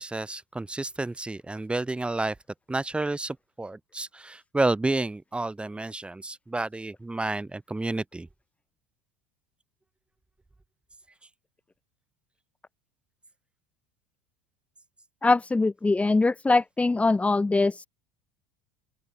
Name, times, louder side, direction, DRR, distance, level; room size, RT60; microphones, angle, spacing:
voice 1, 0.0-2.3 2.7-8.3, right 2 dB, 10° right, 5.5 m, -30 dB
voice 2, 15.2-17.9, left 3 dB, 15° left, 2.1 m, -22 dB
open air
hypercardioid pair, 85°, 10 cm